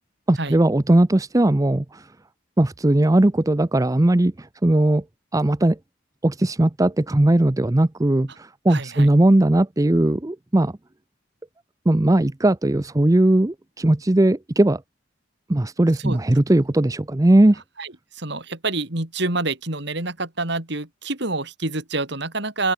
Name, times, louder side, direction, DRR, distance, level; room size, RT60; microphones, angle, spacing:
voice 1, 0.3-2.1 2.6-5.0 5.3-5.8 6.2-10.7 11.9-14.8 15.5-17.6, right 1 dB, 15° right, 0.5 m, -18 dB
voice 2, 8.7-9.1 16.0-16.2 17.8-22.7, right 2 dB, 60° right, 3.6 m, -27 dB
open air
head